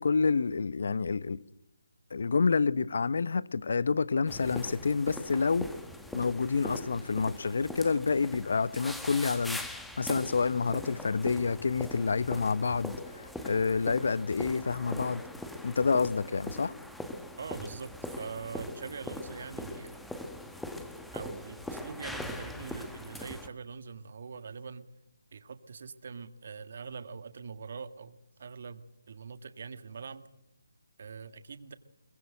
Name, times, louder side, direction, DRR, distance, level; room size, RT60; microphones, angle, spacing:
voice 1, 0.0-1.4 2.1-5.7 6.1-9.6 10.0-15.2 15.6-16.7, left 4 dB, 60° left, 0.9 m, -28 dB
sound 1, 4.3-23.5, left 1 dB, ahead, 1.4 m, -41 dB
voice 2, 17.4-20.0 21.1-24.8 25.3-30.2 31.0-31.7, right 5 dB, 50° right, 1.7 m, -43 dB
23.0 x 21.0 x 7.8 m
figure-of-eight pair, 155°, 0 cm